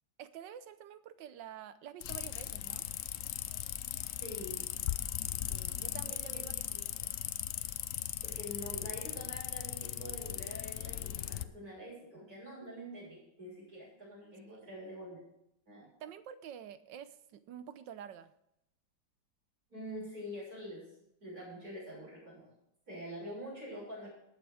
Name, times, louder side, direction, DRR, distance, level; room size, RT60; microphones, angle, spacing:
voice 1, 0.2-2.8 5.4-7.1 14.5-14.6 15.8-18.3, right 9 dB, 90° right, 13 dB, 1.5 m, -49 dB
sound 1, 2.0-11.4, left 12 dB, 75° left, 0.7 m, -38 dB
voice 2, 4.2-4.7 6.3-6.8 8.2-15.2 15.7-15.9 19.7-20.8 21.2-22.5 22.9-24.1, equal, 55° right, -6 dB, 7.1 m, -45 dB
19.0 x 7.0 x 4.9 m, 0.79 s
omnidirectional pair, 1.9 m